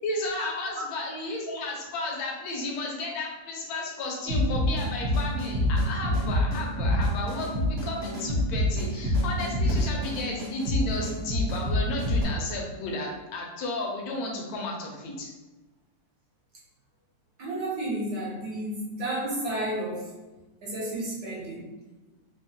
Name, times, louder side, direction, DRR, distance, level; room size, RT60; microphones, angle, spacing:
voice 1, 0.0-15.3, left 2 dB, 70° left, -1 dB, 1.1 m, -33 dB
sound 1, 4.3-12.2, left 1 dB, 55° right, 0.9 m, -26 dB
voice 2, 17.4-20.1 20.6-21.7, right 1 dB, 75° right, -6 dB, 1.4 m, -32 dB
3.3 x 2.0 x 2.7 m, 1.1 s
omnidirectional pair, 1.7 m